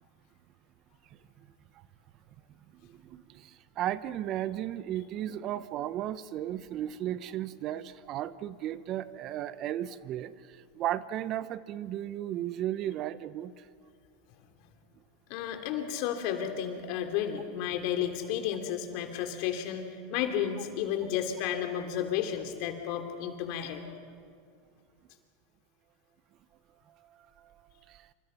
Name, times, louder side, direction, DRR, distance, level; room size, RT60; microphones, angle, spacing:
voice 1, 2.8-13.5 27.1-27.2 27.9-28.0, right 12 dB, 45° right, 15 dB, 0.9 m, -35 dB
voice 2, 15.3-23.8, left 9 dB, 60° left, 5 dB, 3.0 m, -32 dB
27.0 x 26.0 x 5.8 m, 2.2 s
hypercardioid pair, 100°, 0 cm